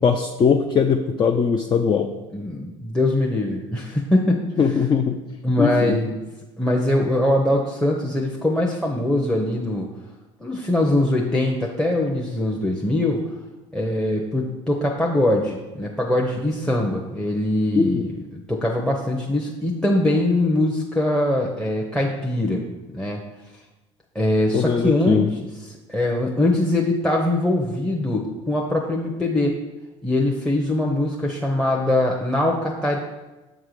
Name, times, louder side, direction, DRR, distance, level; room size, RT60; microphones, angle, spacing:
voice 1, 0.0-2.1 4.6-5.2 5.6-6.0 17.7-18.0 24.5-25.3, left 6 dB, 30° left, 6 dB, 0.4 m, -20 dB
voice 2, 2.3-4.4 5.4-6.2 6.6-9.9 10.4-13.2 13.7-22.6 22.9-23.2 24.1-25.3 25.9-29.6 30.0-33.0, left 1 dB, 5° left, 0 dB, 0.8 m, -22 dB
7.4 x 3.7 x 4.8 m, 1.1 s
hypercardioid pair, 75°, 15 cm